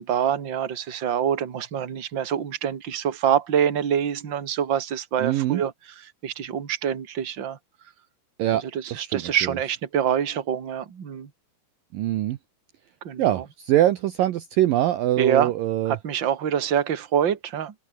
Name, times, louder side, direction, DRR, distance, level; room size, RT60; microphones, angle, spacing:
voice 1, 0.0-7.6 8.5-11.3 13.0-13.4 15.2-15.5 15.9-17.7, right 9 dB, 40° right, 1.9 m, -25 dB
voice 2, 5.2-5.6 8.4-8.6 8.9-9.3 11.9-12.4 13.2-16.0, right 13 dB, 75° right, 2.1 m, -23 dB
omnidirectional pair, 5.1 m